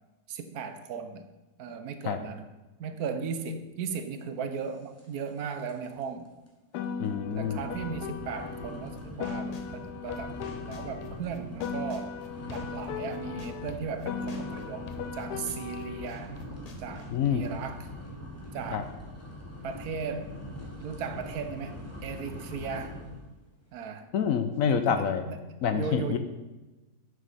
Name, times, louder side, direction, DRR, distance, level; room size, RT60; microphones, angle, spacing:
voice 1, 0.3-1.3 1.6-2.5 2.8-6.3 7.3-12.2 12.5-16.4 16.8-17.9 18.5-18.9 19.6-20.3 20.8-21.8 22.0-23.0 23.7-24.1 24.9-25.5 25.7-26.2, right 6 dB, 75° right, 9 dB, 1.2 m, -37 dB
sound 1, 5.0-5.4 5.6-6.0 6.5-6.6 7.1-23.3, equal, 10° left, 1.1 m, -43 dB
Piano, 6.7-11.2 11.6-16.2, left 6 dB, 85° left, 1.2 m, -38 dB
voice 2, 7.0-7.6 17.1-17.4 18.7-18.8 24.1-25.2 25.6-26.2, left 7 dB, 70° left, 8 dB, 0.9 m, -27 dB
sound 2, 9.0-9.7 10.1-12.9 13.1-17.3, left 3 dB, 45° left, 0.5 m, -47 dB
8.8 x 6.3 x 4.1 m, 1.1 s
omnidirectional pair, 1.7 m